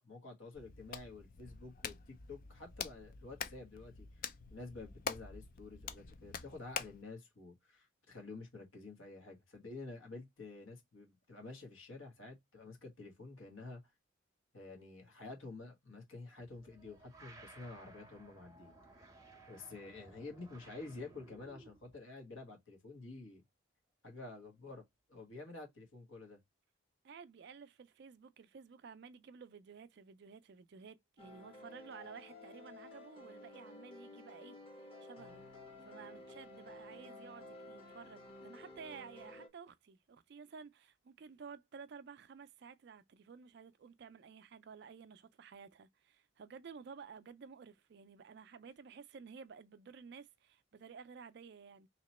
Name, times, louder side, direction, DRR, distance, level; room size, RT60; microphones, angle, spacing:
voice 1, 0.0-13.9 14.5-18.7 19.0-19.1 19.5-23.4 24.0-26.4, left 3 dB, 75° left, 1.4 m, -50 dB
Hands, 0.5-7.0, left 6 dB, 40° left, 0.4 m, -46 dB
sound 1, 16.5-22.0, right 2 dB, 15° right, 0.7 m, -58 dB
voice 2, 27.0-34.6 35.0-35.4 35.9-51.9, right 6 dB, 50° right, 0.3 m, -53 dB
sound 2, 31.2-39.5, left 2 dB, 25° left, 0.9 m, -53 dB
2.9 x 2.9 x 4.1 m
head